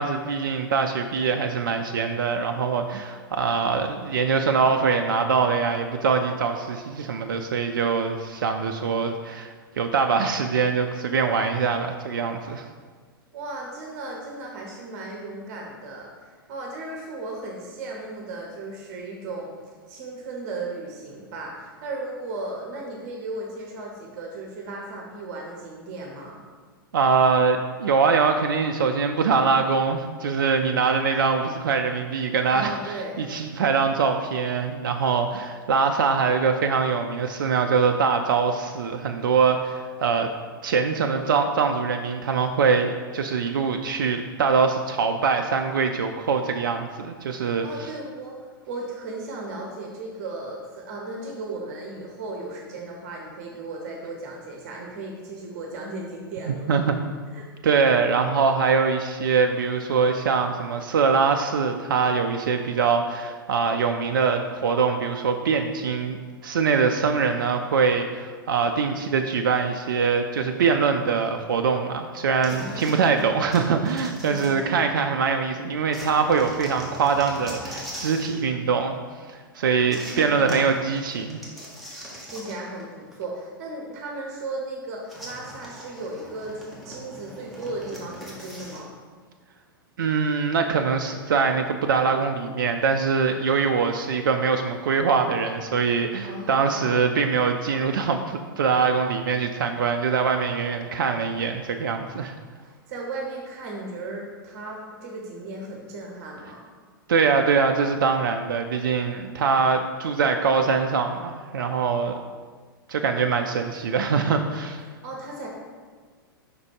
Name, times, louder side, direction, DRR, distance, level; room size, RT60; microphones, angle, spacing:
voice 1, 0.0-12.7 26.9-40.3 40.6-47.7 56.5-57.0 57.6-66.2 66.4-79.0 79.3-81.4 90.0-102.3 107.1-112.2 112.9-114.8, right 5 dB, 60° right, 5 dB, 0.4 m, -23 dB
voice 2, 13.3-19.5 19.9-26.4 32.5-33.2 47.5-56.7 57.3-57.5 72.5-73.4 74.2-74.8 79.9-80.8 82.3-88.9 96.2-96.9 102.6-106.6 114.8-115.5, right 2 dB, 45° right, -1 dB, 0.9 m, -36 dB
sound 1, 72.4-75.1 75.9-78.4 79.9-82.8 83.1-83.2 85.1-88.9, equal, ahead, 1.1 m, -40 dB
5.2 x 4.1 x 4.6 m, 1.5 s
figure-of-eight pair, 100°, 12 cm